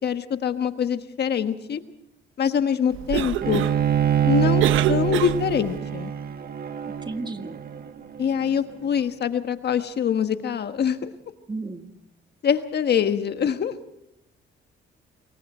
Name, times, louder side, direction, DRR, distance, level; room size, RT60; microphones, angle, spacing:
voice 1, 0.0-1.8 2.4-3.6 4.2-6.1 8.2-11.1 12.4-13.7, left 8 dB, 55° left, 9 dB, 1.4 m, -24 dB
Cough, 2.9-5.8, right 13 dB, 85° right, 0.8 m, -28 dB
Bowed string instrument, 3.4-8.7, right 9 dB, 50° right, 1.5 m, -25 dB
voice 2, 6.9-7.6 11.5-11.9, right 3 dB, 20° right, 7 dB, 1.7 m, -33 dB
26.5 x 22.5 x 4.4 m, 0.80 s
cardioid pair, 90°, 20 cm